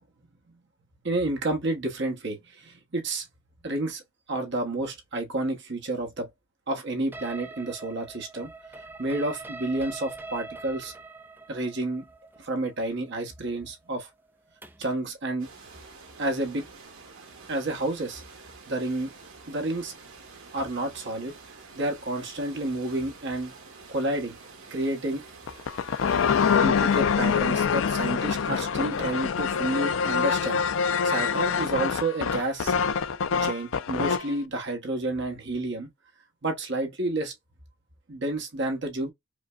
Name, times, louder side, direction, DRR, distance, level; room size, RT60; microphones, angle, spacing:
voice 1, 1.0-3.3 3.6-4.0 4.3-6.3 6.7-8.5 9.0-10.9 11.5-12.0 12.4-14.1 14.8-15.5 16.2-16.6 17.5-18.2 18.7-19.1 19.5-19.9 20.5-21.3 21.7-23.5 23.9-24.4 24.7-25.2 26.6-30.6 31.0-32.7 33.3-35.9 36.4-37.3 38.1-39.1, right 2 dB, 55° right, 1.0 m, -30 dB
sound 1, 7.1-15.0, right 3 dB, 10° right, 0.4 m, -43 dB
sound 2, 15.4-26.6, right 4 dB, 80° right, 1.5 m, -48 dB
sound 3, 25.5-34.3, left 6 dB, 75° left, 0.4 m, -25 dB
4.9 x 2.1 x 2.3 m
head